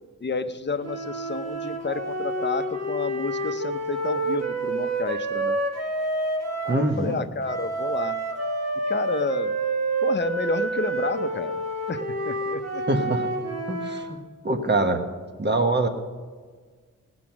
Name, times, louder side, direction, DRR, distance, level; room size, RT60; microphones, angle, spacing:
voice 1, 0.2-5.6 6.6-8.2 8.9-9.5 10.0-11.6 11.9-12.8, left 4 dB, 35° left, 9 dB, 0.7 m, -30 dB
sound 1, 0.8-6.9 7.4-14.1, right 2 dB, 55° right, 2.3 m, -28 dB
voice 2, 6.7-7.2 12.9-13.2 13.7-14.2 14.4-15.0 15.4-15.9, right 2 dB, 35° right, 6 dB, 1.4 m, -24 dB
18.5 x 6.2 x 5.9 m, 1.5 s
wide cardioid pair, 90°, 32 cm